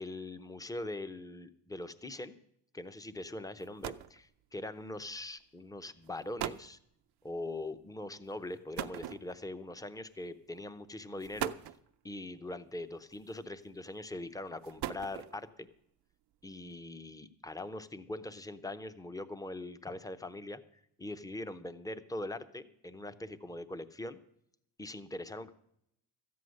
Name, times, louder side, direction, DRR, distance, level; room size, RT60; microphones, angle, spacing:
voice 1, 0.0-2.4 2.7-6.8 7.2-11.5 12.0-15.7 16.4-20.6 21.0-24.2 24.8-25.5, left 2 dB, 10° left, 11 dB, 0.6 m, -42 dB
sound 1, 3.2-3.3 3.6-4.2 5.2-5.4 6.0-6.1 6.4-6.7 8.8-9.6 10.6-10.7 11.2-11.9 13.1-13.6 14.5-15.5, right 12 dB, 70° right, 0.6 m, -40 dB
13.5 x 9.4 x 6.4 m, 0.74 s
cardioid pair, 105°, 41 cm